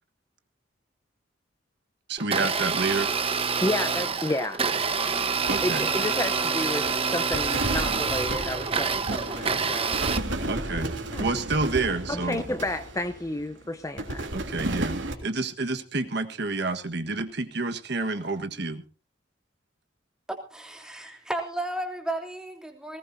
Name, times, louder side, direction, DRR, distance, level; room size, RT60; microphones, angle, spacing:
voice 1, 2.1-3.1 5.5-5.9 10.4-10.9 11.2-12.4 14.3-18.8, right 3 dB, 60° right, 7 dB, 1.5 m, -29 dB
Domestic sounds home sounds, 2.2-10.2, right 5 dB, 30° right, 1.1 m, -27 dB
voice 2, 3.6-4.6 4.9-5.2 5.6-10.1 11.1-11.3 12.1-14.3, left 1 dB, 15° left, 8 dB, 0.8 m, -31 dB
sound 1, 5.5-6.6 6.9-13.5 14.0-15.1, right 1 dB, 75° right, 3.2 m, -33 dB
voice 3, 20.3-23.0, right 1 dB, 5° right, 2 dB, 3.2 m, -33 dB
20.0 x 18.5 x 2.7 m, 0.38 s
head